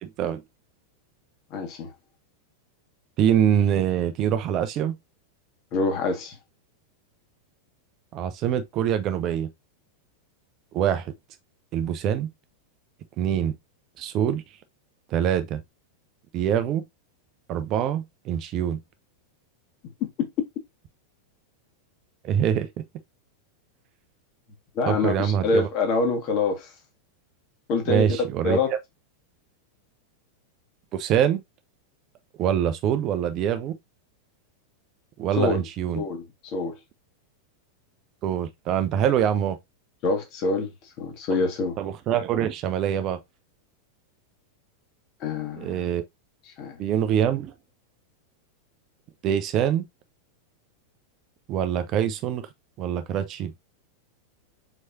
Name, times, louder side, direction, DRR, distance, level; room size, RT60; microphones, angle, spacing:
voice 1, 0.0-0.4 3.2-4.9 8.1-9.5 10.7-11.1 11.7-12.3 13.2-13.5 14.0-14.4 15.1-15.6 16.3-16.8 17.5-18.8 22.2-22.7 24.9-25.7 27.9-28.6 30.9-31.4 32.4-33.8 35.2-36.0 38.2-39.6 41.8-43.2 45.5-46.0 46.8-47.5 49.2-49.8 51.5-52.5 52.8-53.5, right 9 dB, 35° right, 0.5 m, -24 dB
voice 2, 1.5-1.9 5.7-6.4 20.0-20.3 24.8-26.7 27.7-28.1 28.4-28.7 35.4-35.6 36.0-36.8 40.0-40.7 41.0-41.8 45.2-45.9 46.6-46.8, left 3 dB, 40° left, 1.6 m, -25 dB
4.7 x 4.2 x 2.7 m
figure-of-eight pair, 90°, 0 cm